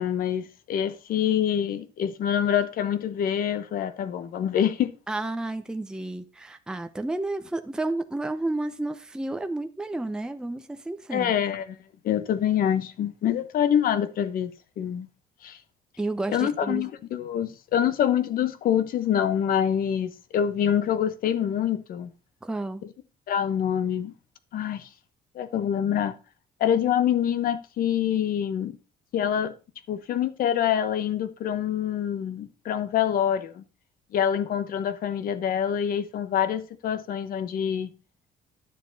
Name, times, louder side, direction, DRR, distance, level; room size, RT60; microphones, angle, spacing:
voice 1, 0.0-5.0 11.1-11.8 12.0-15.1 15.4-15.6 16.3-22.1 23.3-24.1 24.5-24.9 25.3-26.1 26.6-28.8 29.1-29.5 29.9-33.6 34.1-37.9, left 9 dB, 60° left, 1.0 m, -26 dB
voice 2, 5.1-11.3 16.0-16.9 22.4-22.8, right 2 dB, 5° right, 0.6 m, -31 dB
10.5 x 7.3 x 4.0 m
cardioid pair, 135°, 16 cm